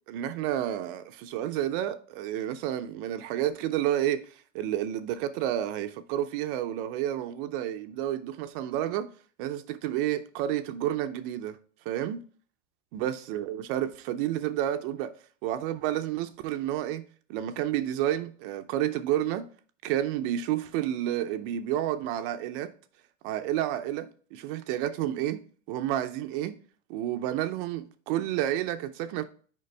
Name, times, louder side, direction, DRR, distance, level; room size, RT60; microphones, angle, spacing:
voice 1, 0.1-4.2 4.5-9.1 9.4-11.6 11.9-12.2 12.9-15.1 15.4-17.0 17.3-19.5 19.8-22.7 23.2-25.4 25.7-26.5 26.9-29.2, right 12 dB, 45° right, 0.6 m, -30 dB
6.8 x 5.1 x 3.2 m
supercardioid pair, 130°, 38 cm